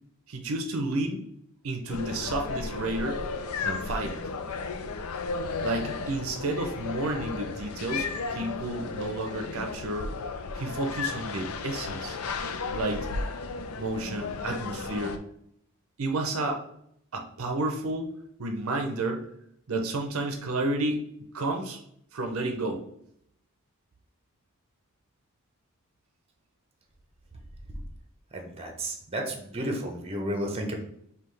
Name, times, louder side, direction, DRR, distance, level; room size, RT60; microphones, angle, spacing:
voice 1, 0.3-1.2 1.6-3.2 3.6-4.2 5.6-10.1 10.6-12.2 12.7-13.1 13.8-15.2 16.0-16.6 17.1-18.1 18.4-19.2 19.7-21.0 21.3-21.8 22.1-22.8, right 2 dB, 70° right, 4 dB, 0.6 m, -31 dB
sound 1, 1.9-15.2, left 4 dB, 80° left, 0.5 m, -34 dB
voice 2, 28.3-30.8, right 1 dB, 30° right, 3 dB, 0.7 m, -32 dB
5.5 x 2.3 x 3.2 m, 0.70 s
head